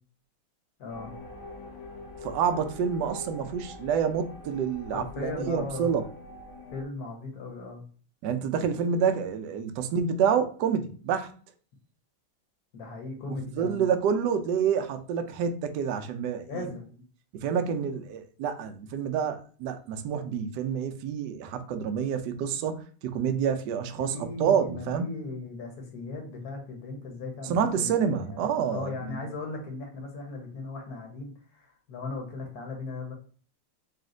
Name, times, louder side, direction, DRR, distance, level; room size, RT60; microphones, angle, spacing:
voice 1, 0.8-1.1 4.9-6.0 6.7-7.8 12.7-13.9 16.5-17.0 24.0-33.1, left 3 dB, 55° left, 1.3 m, -38 dB
sound 1, 0.9-6.8, left 2 dB, 75° left, 1.4 m, -43 dB
voice 2, 2.2-6.0 8.2-11.3 13.6-16.7 17.3-25.1 27.5-29.3, right 7 dB, 75° right, 0.9 m, -28 dB
4.1 x 2.4 x 3.8 m
omnidirectional pair, 2.4 m